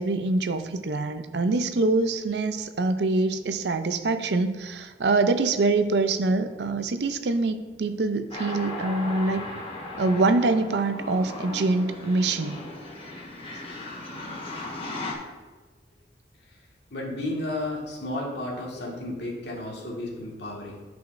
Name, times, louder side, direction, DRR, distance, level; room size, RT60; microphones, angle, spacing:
voice 1, 0.0-9.5 10.0-12.6, right 3 dB, 70° right, 10 dB, 0.5 m, -25 dB
sound 1, 8.3-15.1, left 2 dB, 35° left, 1.2 m, -37 dB
voice 2, 16.9-20.8, left 1 dB, 70° left, -3 dB, 1.8 m, -33 dB
11.0 x 5.1 x 2.6 m, 1.3 s
head